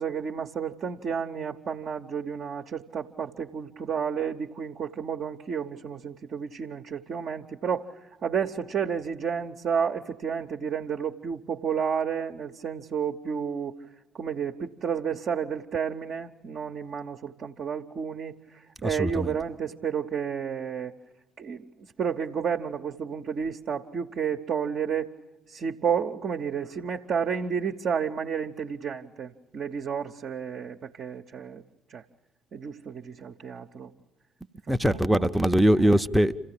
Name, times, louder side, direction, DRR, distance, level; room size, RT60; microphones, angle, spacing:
voice 1, 0.0-13.7 14.1-20.9 21.4-25.1 25.5-31.6 31.9-32.0 32.5-33.9 34.8-35.3 35.8-36.0, right 7 dB, 50° right, 2 dB, 0.8 m, -31 dB
voice 2, 18.8-19.4 34.7-36.3, equal, ahead, 6 dB, 0.7 m, -22 dB
27.5 x 15.5 x 8.6 m, 1.0 s
figure-of-eight pair, 50°, 0 cm